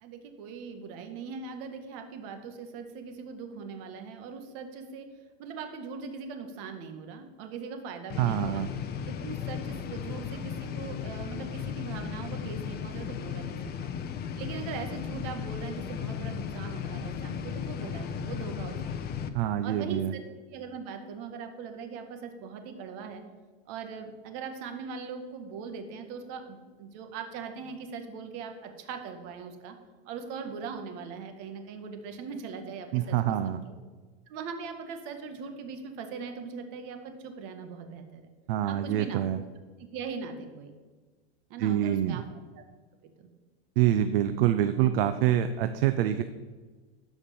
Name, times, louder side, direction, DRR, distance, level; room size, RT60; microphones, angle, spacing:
voice 1, 0.0-5.1 5.4-8.6 9.1-13.9 14.4-19.2 19.6-20.2 20.5-23.2 23.7-29.8 30.1-33.2 33.4-33.6 34.3-38.3 38.6-39.2 39.9-40.7 41.5-42.2 42.5-42.6 43.0-43.3, right 5 dB, 50° right, 5 dB, 1.9 m, -40 dB
sound 1, 8.1-19.3, left 7 dB, 30° left, 0.9 m, -36 dB
voice 2, 8.2-8.7 19.3-20.1 32.9-33.6 38.5-39.4 41.6-42.2 43.8-46.2, right 11 dB, 65° right, 10 dB, 0.7 m, -26 dB
13.0 x 5.1 x 7.0 m, 1.4 s
supercardioid pair, 125°, 31 cm